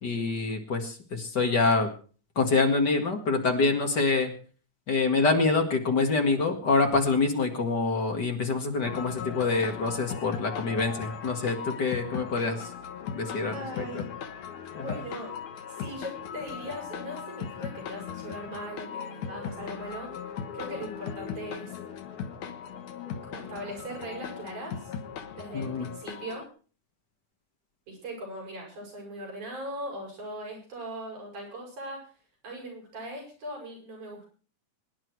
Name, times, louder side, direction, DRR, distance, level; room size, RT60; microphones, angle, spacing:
voice 1, 0.0-1.9 2.4-4.3 4.9-12.7 13.1-14.0 14.7-15.0 25.5-25.9, left 3 dB, 40° left, 4 dB, 2.1 m, -26 dB
sound 1, 8.8-26.5, left 7 dB, 90° left, 2.8 m, -38 dB
voice 2, 13.5-14.1 14.8-15.3 15.8-20.2 20.5-21.7 23.2-24.9 25.3-26.5 27.9-32.1 32.4-34.2, right 1 dB, 80° right, -1 dB, 8.5 m, -39 dB
23.5 x 10.5 x 4.7 m, 0.40 s
omnidirectional pair, 3.4 m